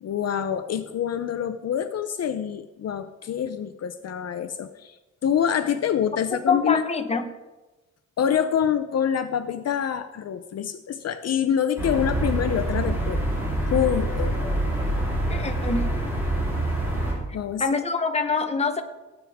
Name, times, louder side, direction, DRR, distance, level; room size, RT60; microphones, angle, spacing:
voice 1, 0.0-5.0 5.2-6.8 8.2-13.2 13.6-14.4 17.3-17.6, left 9 dB, 55° left, 10 dB, 0.6 m, -26 dB
voice 2, 6.3-7.3 15.3-15.9 17.6-18.8, left 4 dB, 20° left, 6 dB, 0.8 m, -25 dB
sound 1, 11.8-17.1, right 1 dB, 10° right, 3.5 m, -26 dB
17.5 x 8.7 x 3.5 m, 1.1 s
wide cardioid pair, 170°, 30 cm